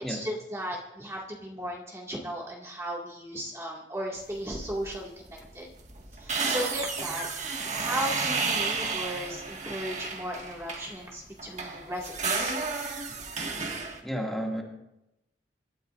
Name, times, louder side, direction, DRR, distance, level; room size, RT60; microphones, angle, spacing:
voice 1, 0.0-5.7 6.1-12.6, equal, 15° right, -3 dB, 2.0 m, -36 dB
sound 1, 4.5-5.0 5.3-5.4 5.7-11.0 11.4-14.0, right 4 dB, 40° right, 1.7 m, -32 dB
voice 2, 14.0-14.6, equal, ahead, -1 dB, 2.2 m, -31 dB
27.0 x 13.0 x 2.5 m, 0.88 s
head